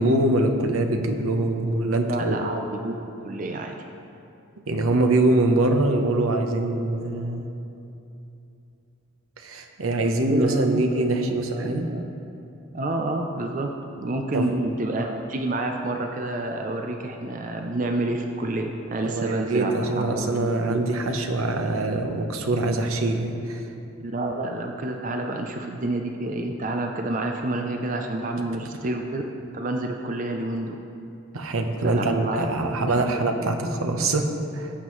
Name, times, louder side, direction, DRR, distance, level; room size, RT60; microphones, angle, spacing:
voice 1, 0.0-2.4 4.7-7.5 9.4-11.9 14.3-14.6 19.0-23.7 31.3-34.7, right 2 dB, 80° right, 4 dB, 0.9 m, -24 dB
voice 2, 2.1-3.7 10.3-12.0 12.7-13.7 14.0-20.8 24.0-29.2 29.5-30.8 31.8-33.6, right 2 dB, 40° right, 3 dB, 0.5 m, -29 dB
14.0 x 8.1 x 3.1 m, 2.8 s
head